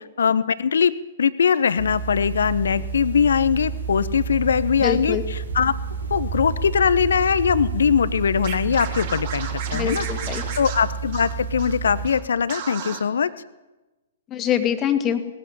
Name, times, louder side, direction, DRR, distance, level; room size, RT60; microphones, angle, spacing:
voice 1, 0.2-5.7 6.1-10.1 10.6-13.3, left 7 dB, 65° left, 15 dB, 1.0 m, -21 dB
sound 1, 1.8-12.1, right 6 dB, 75° right, 4.3 m, -30 dB
voice 2, 4.8-5.2 9.7-10.4 14.3-15.2, left 9 dB, 25° left, 7 dB, 2.1 m, -24 dB
Scratching (performance technique), 8.4-11.8 12.0-12.2 12.5-13.0, right 7 dB, 45° right, 3.6 m, -34 dB
19.5 x 14.5 x 9.4 m, 1.1 s
figure-of-eight pair, 115°, 0 cm